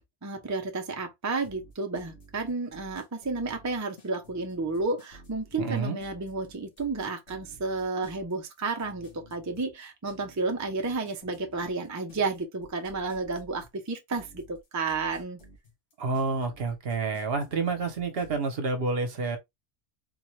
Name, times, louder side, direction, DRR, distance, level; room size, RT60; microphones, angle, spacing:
voice 1, 0.2-15.4, right 3 dB, 20° right, 0.5 m, -32 dB
sound 1, 1.4-18.5, equal, 85° left, 1.6 m, -53 dB
voice 2, 5.6-6.0 16.0-19.4, right 4 dB, 60° right, 1.0 m, -29 dB
3.9 x 2.3 x 3.1 m
omnidirectional pair, 1.2 m